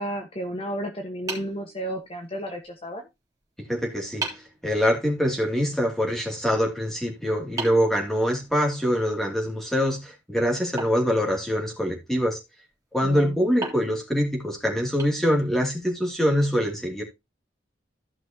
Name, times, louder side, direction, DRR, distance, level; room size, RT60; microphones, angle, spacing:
voice 1, 0.0-3.1 13.0-13.4, right 1 dB, 30° left, 1.4 m, -32 dB
sound 1, 1.3-2.4 3.6-3.7 4.2-4.6 7.6-8.8 10.8-11.9 13.6-15.7, right 3 dB, 20° right, 3.7 m, -37 dB
voice 2, 3.7-4.3 4.6-12.4 12.9-17.0, equal, ahead, 2.7 m, -24 dB
14.5 x 6.1 x 2.9 m
head